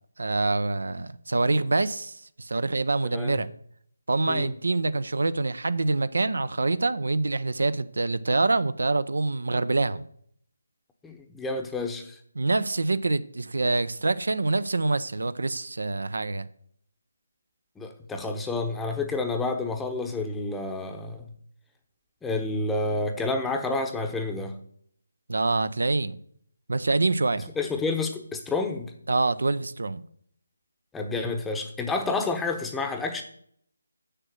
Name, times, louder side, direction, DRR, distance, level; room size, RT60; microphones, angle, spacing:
voice 1, 0.2-3.5 4.1-10.0 12.4-16.5 25.3-26.2 26.7-27.5 29.1-30.0, right 3 dB, 65° right, 0.6 m, -25 dB
voice 2, 11.0-12.2 17.8-21.3 22.2-24.6 27.6-28.9 30.9-33.2, left 3 dB, 5° left, 0.9 m, -29 dB
7.2 x 6.7 x 7.5 m
figure-of-eight pair, 155°, 0 cm